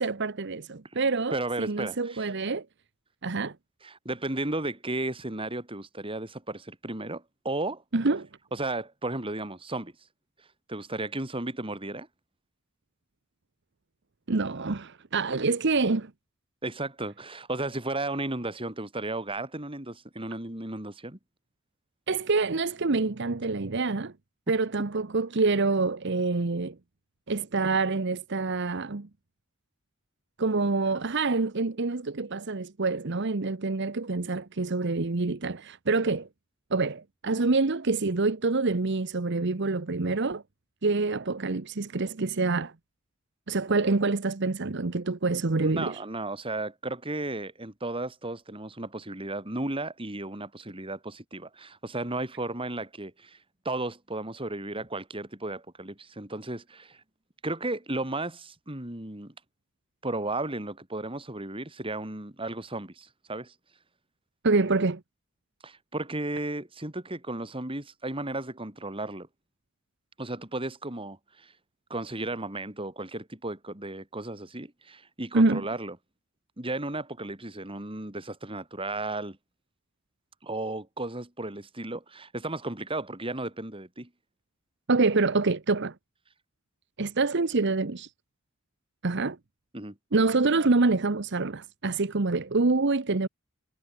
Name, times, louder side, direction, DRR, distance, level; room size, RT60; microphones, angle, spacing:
voice 1, 0.0-2.6 3.2-3.5 7.9-8.3 14.3-16.1 22.1-24.1 24.5-26.7 27.3-29.1 30.4-36.3 36.7-40.4 40.8-42.7 43.5-46.0 64.4-65.0 75.3-75.6 84.9-85.9 87.0-88.1 89.0-89.4 90.1-93.3, right 3 dB, 60° right, 1.0 m, -26 dB
voice 2, 1.3-2.3 3.8-7.8 8.5-9.9 10.7-12.1 16.6-21.2 45.6-53.4 53.7-57.0 57.4-59.3 60.0-63.5 65.6-69.3 70.2-71.5 71.9-76.0 76.6-79.4 80.4-84.1 89.7-90.0, right 2 dB, 25° right, 3.5 m, -34 dB
head